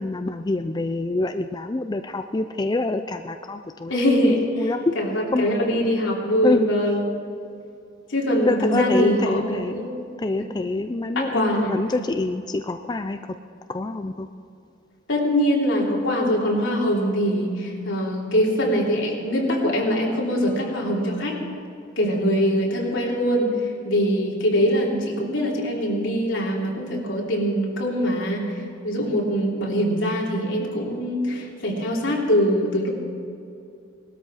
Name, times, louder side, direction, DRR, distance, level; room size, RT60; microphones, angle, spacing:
voice 1, 0.0-3.9 4.3-4.9 5.3-5.5 6.4-6.7 8.4-9.9 10.2-13.2 13.7-14.3, left 2 dB, 20° left, 7 dB, 0.4 m, -26 dB
voice 2, 3.9-4.4 4.9-7.1 8.1-9.9 10.3-10.4 11.1-12.0 15.1-21.4 22.0-23.5 23.8-28.5 28.8-32.9, equal, 75° left, -2 dB, 3.1 m, -23 dB
19.0 x 12.5 x 5.0 m, 2.6 s
head